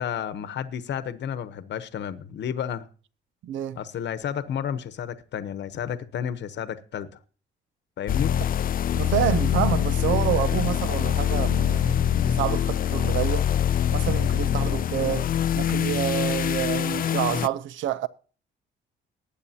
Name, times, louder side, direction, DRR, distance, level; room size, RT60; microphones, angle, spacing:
voice 1, 0.0-2.9 3.7-7.1 8.0-8.4, left 8 dB, 65° left, 1.0 m, -31 dB
voice 2, 3.4-3.8 8.9-13.5 13.9-15.3 15.5-18.1, right 12 dB, 75° right, 0.6 m, -28 dB
sound 1, 8.1-17.5, left 10 dB, 45° left, 0.4 m, -24 dB
20.0 x 8.5 x 2.8 m
cardioid pair, 90°, 20 cm